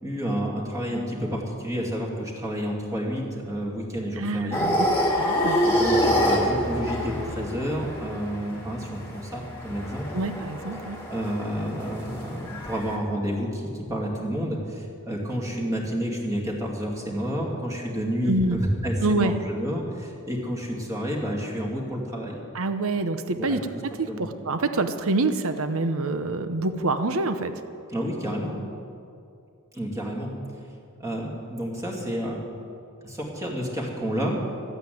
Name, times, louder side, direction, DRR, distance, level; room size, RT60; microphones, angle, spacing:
voice 1, 0.0-4.6 5.6-10.1 11.1-22.4 23.3-23.6 24.1-24.3 27.9-28.5 29.7-30.3 30.6-30.7 31.0-32.4 33.0-34.5, equal, 15° right, -3 dB, 2.4 m, -30 dB
voice 2, 4.2-4.8 5.2-5.6 10.1-11.0 18.3-18.6 19.0-19.3 22.5-23.6 24.0-27.5, right 2 dB, 65° right, 9 dB, 0.9 m, -26 dB
sound 1, 4.5-13.0, equal, 10° left, 2.4 m, -27 dB
13.5 x 9.1 x 9.2 m, 2.5 s
head